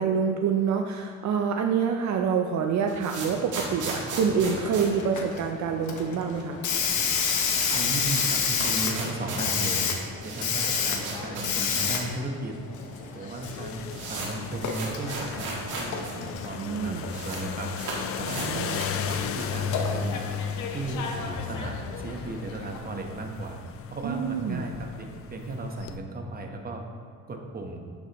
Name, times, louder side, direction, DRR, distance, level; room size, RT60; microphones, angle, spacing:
voice 1, 0.0-6.6 16.5-17.0 18.2-18.8 24.0-24.7, right 6 dB, 65° right, 4 dB, 0.6 m, -27 dB
sound 1, 2.6-5.9 6.1-6.2 6.5-6.6 6.8-12.0 12.3-12.4 13.1-13.2 13.4-16.1 16.4-16.5 16.7-17.4 17.7-19.6, right 3 dB, 85° right, 1.7 m, -36 dB
Hiss, 4.4-22.8, left 6 dB, 75° left, 1.0 m, -31 dB
voice 2, 7.7-9.8 10.2-12.6 13.1-17.7 18.2-23.6 23.9-26.8 27.3-27.8, right 2 dB, 30° right, 2 dB, 1.1 m, -35 dB
sound 2, 13.4-26.0, left 8 dB, 50° left, 0.5 m, -36 dB
9.5 x 6.3 x 3.0 m, 2.3 s
cardioid pair, 90°, 30 cm